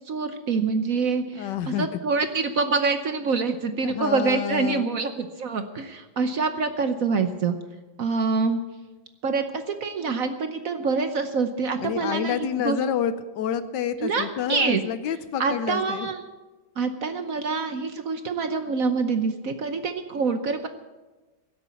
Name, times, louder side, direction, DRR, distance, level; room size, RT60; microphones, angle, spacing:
voice 1, 0.1-7.6 8.0-8.6 9.2-12.8 14.0-14.8 15.4-16.2 16.8-20.7, right 4 dB, 55° right, 8 dB, 1.1 m, -26 dB
voice 2, 1.4-1.9 3.8-4.9 11.8-16.1, left 8 dB, 70° left, 13 dB, 1.3 m, -28 dB
16.5 x 8.2 x 8.4 m, 1.2 s
omnidirectional pair, 2.1 m